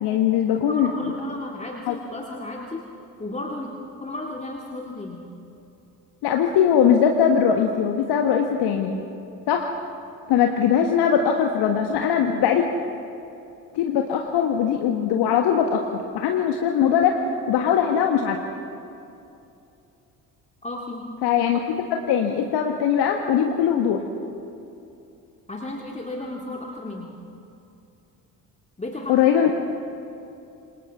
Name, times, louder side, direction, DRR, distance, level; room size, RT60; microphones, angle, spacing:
voice 1, 0.0-0.9 1.9-2.0 6.2-9.0 9.5-9.7 10.3-12.6 13.7-17.1 17.5-18.4 21.2-21.6 21.9-24.0 29.1-29.5, left 8 dB, 55° left, 3 dB, 1.5 m, -20 dB
voice 2, 0.6-2.8 3.2-3.7 4.0-5.3 20.6-21.0 25.5-27.1 28.8-29.2, left 2 dB, 15° left, -1 dB, 2.2 m, -33 dB
27.5 x 27.0 x 3.6 m, 2.7 s
figure-of-eight pair, 50°, 49 cm